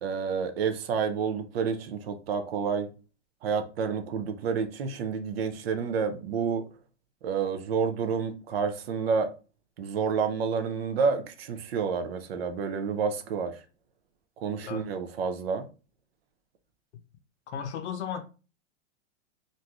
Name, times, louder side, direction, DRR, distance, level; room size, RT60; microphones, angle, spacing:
voice 1, 0.0-2.9 3.4-6.7 7.2-9.3 9.8-13.6 14.4-15.7, right 6 dB, 55° right, 0.5 m, -29 dB
voice 2, 17.5-18.2, left 7 dB, 65° left, 0.6 m, -34 dB
3.0 x 2.6 x 2.2 m
supercardioid pair, 160°, 36 cm